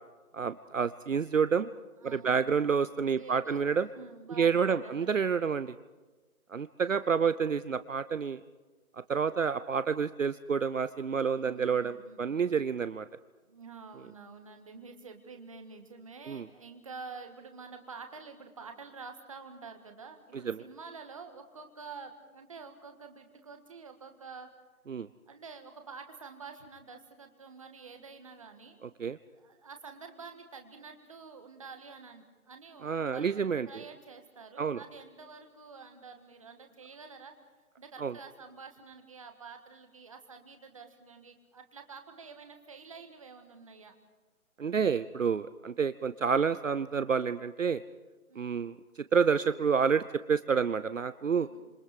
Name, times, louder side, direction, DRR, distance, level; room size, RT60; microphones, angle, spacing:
voice 1, 0.3-1.7 2.0-3.9 4.4-5.7 6.5-8.4 8.9-13.1 16.3-16.5 20.3-20.6 24.9-25.1 28.8-29.2 32.8-33.7 34.6-34.8 38.0-38.1 44.6-47.8 48.4-50.0 50.3-51.5, right 6 dB, 60° right, 13 dB, 0.8 m, -29 dB
voice 2, 2.0-2.4 3.2-5.2 11.3-12.2 13.5-24.5 25.3-28.8 29.3-33.4 33.6-37.3 37.8-43.9 48.3-48.6 51.3-51.6, right 4 dB, 25° right, 6 dB, 1.6 m, -48 dB
27.5 x 27.0 x 5.0 m, 1.2 s
figure-of-eight pair, 170°, 43 cm